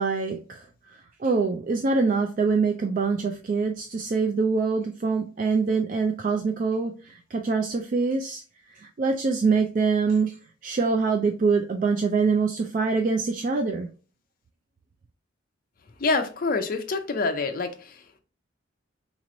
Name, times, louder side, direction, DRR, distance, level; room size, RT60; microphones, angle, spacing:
voice 1, 0.0-8.4 8.7-10.3 10.6-13.9, right 4 dB, 40° right, 0.3 m, -24 dB
voice 2, 16.0-17.7, left 3 dB, 45° left, 0.5 m, -26 dB
4.0 x 3.0 x 2.5 m
head